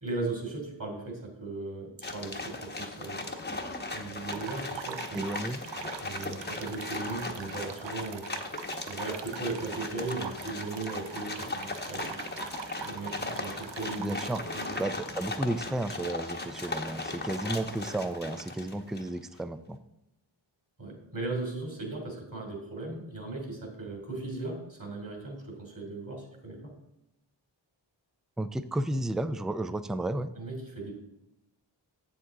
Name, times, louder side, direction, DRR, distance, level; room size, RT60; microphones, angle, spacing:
voice 1, 0.0-3.3 3.9-5.3 6.0-8.2 8.9-12.2 12.8-14.1 14.5-14.7 20.8-26.7 30.3-30.9, right 3 dB, 45° right, 1 dB, 2.9 m, -37 dB
sound 1, 2.0-19.2, left 2 dB, 20° left, 0.9 m, -38 dB
sound 2, 4.3-14.8, right 8 dB, 65° right, 0.6 m, -43 dB
voice 2, 5.1-5.6 14.0-14.4 14.8-19.8 28.4-30.3, right 1 dB, ahead, 12 dB, 0.3 m, -32 dB
7.9 x 7.1 x 3.7 m, 0.88 s
wide cardioid pair, 60°, 47 cm